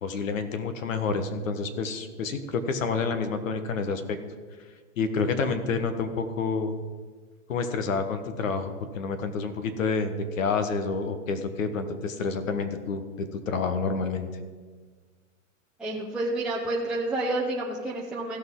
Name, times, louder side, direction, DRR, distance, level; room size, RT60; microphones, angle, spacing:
voice 1, 0.0-4.2 5.0-6.7 7.5-14.3, left 4 dB, 75° left, 8 dB, 1.4 m, -29 dB
voice 2, 15.8-18.4, right 2 dB, ahead, -6 dB, 0.8 m, -29 dB
16.0 x 6.2 x 3.8 m, 1.5 s
hypercardioid pair, 145°, 39 cm